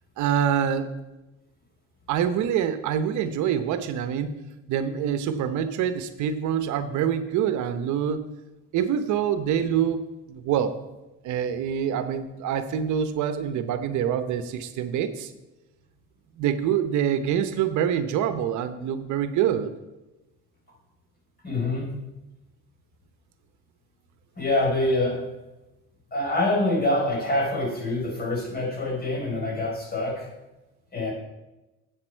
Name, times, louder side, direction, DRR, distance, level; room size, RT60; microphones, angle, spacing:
voice 1, 0.2-0.9 2.1-4.4 4.7-8.3 8.7-10.0 10.3-10.8 11.2-15.3 16.4-19.7, right 9 dB, 70° right, 10 dB, 0.9 m, -25 dB
voice 2, 21.4-21.9 24.4-25.2 26.1-30.3 30.9-31.1, left 2 dB, 30° left, -2 dB, 4.4 m, -25 dB
12.5 x 8.1 x 4.5 m, 1.0 s
cardioid pair, 135°, 31 cm